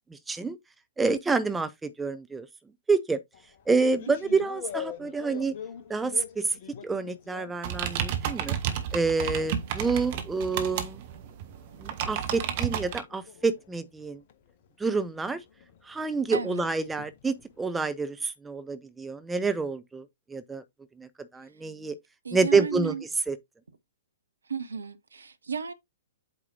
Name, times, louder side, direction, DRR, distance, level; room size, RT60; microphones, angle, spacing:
voice 1, 0.1-0.6 1.0-2.5 2.9-3.2 3.7-5.6 5.9-6.6 6.8-8.6 8.9-11.0 11.8-14.2 14.8-15.4 15.8-20.6 21.0-22.0 22.3-22.9 23.3-23.4, right 4 dB, 10° right, 0.5 m, -28 dB
sound 1, 3.3-8.5 8.9-17.8, left 9 dB, 40° left, 0.8 m, -46 dB
voice 2, 4.1-4.5 16.3-16.7 22.2-23.0 24.5-25.7, right 6 dB, 70° right, 0.9 m, -34 dB
sound 2, 7.6-13.0, right 9 dB, 40° right, 1.0 m, -32 dB
8.3 x 4.8 x 2.7 m
figure-of-eight pair, 115°, 0 cm